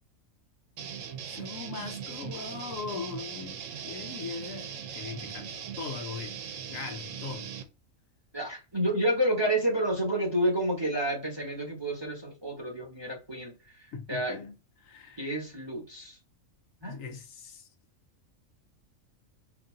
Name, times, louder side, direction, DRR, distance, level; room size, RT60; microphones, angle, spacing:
sound 1, 0.8-7.6, right 8 dB, 75° right, 1.1 m, -40 dB
voice 1, 1.3-6.4 6.7-7.5 13.9-14.5 14.8-15.3 16.9-17.7, left 5 dB, 75° left, 1.1 m, -40 dB
voice 2, 8.3-14.4 15.2-16.2 16.8-17.0, right 1 dB, 20° right, 1.1 m, -30 dB
2.9 x 2.7 x 3.6 m
omnidirectional pair, 1.4 m